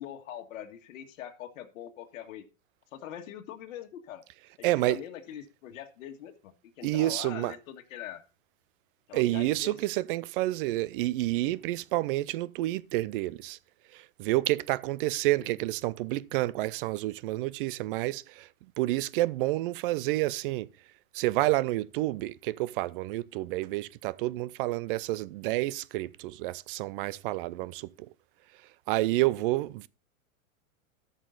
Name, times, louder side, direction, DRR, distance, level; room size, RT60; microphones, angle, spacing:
voice 1, 0.0-2.4 2.9-4.2 4.6-8.2 9.1-9.8, left 10 dB, 65° left, 1.8 m, -43 dB
voice 2, 4.6-5.0 6.8-7.5 9.1-13.6 13.9-18.5 18.8-20.7 21.1-27.9 28.9-29.9, right 17 dB, 40° right, 0.4 m, -29 dB
13.5 x 6.5 x 3.9 m
hypercardioid pair, 130°, 42 cm